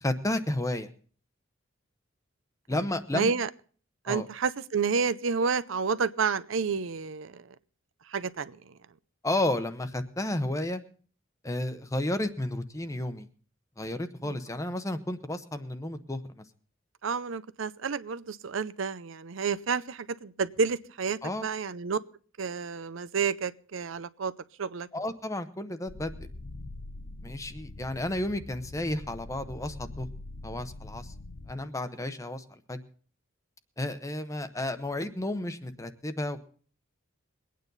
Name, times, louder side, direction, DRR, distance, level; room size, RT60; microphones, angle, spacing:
voice 1, 0.0-0.9 2.7-3.3 4.1-4.3 9.2-10.8 11.4-13.3 13.8-16.4 21.2-21.4 24.9-26.1 27.2-30.1 30.4-31.1 31.5-32.8 33.8-36.4, left 1 dB, 15° left, 10 dB, 0.9 m, -32 dB
voice 2, 3.1-3.5 4.0-7.5 8.1-8.7 14.2-14.4 17.0-22.0 22.4-24.3 24.6-24.9, right 5 dB, 70° right, 15 dB, 0.6 m, -30 dB
sound 1, 25.9-31.5, left 2 dB, 60° left, 0.9 m, -43 dB
22.5 x 9.3 x 4.0 m, 0.43 s
head